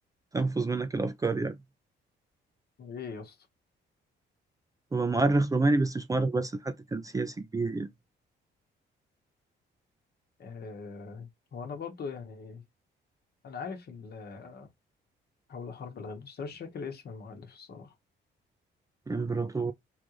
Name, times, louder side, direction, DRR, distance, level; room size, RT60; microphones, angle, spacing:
voice 1, 0.3-1.5 4.9-7.9 19.1-19.7, right 3 dB, 15° right, 0.4 m, -28 dB
voice 2, 2.8-3.4 10.4-12.6 13.4-14.7 15.5-17.9, left 5 dB, 55° left, 1.1 m, -41 dB
3.7 x 2.5 x 3.0 m
cardioid pair, 90°, 20 cm